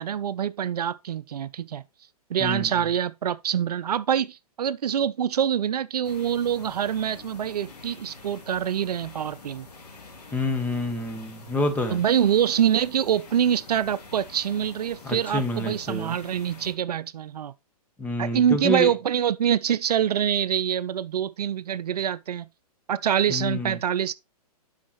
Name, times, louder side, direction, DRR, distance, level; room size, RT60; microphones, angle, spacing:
voice 1, 0.0-1.8 2.3-9.7 11.9-17.5 18.2-22.5 22.9-24.1, right 9 dB, 80° right, 0.5 m, -25 dB
voice 2, 2.4-2.7 10.3-12.0 15.0-16.2 18.0-18.9 23.3-23.8, left 1 dB, 10° left, 1.2 m, -28 dB
sound 1, 6.0-16.7, left 3 dB, 90° left, 2.3 m, -46 dB
7.4 x 5.6 x 3.1 m
hypercardioid pair, 130°, 20 cm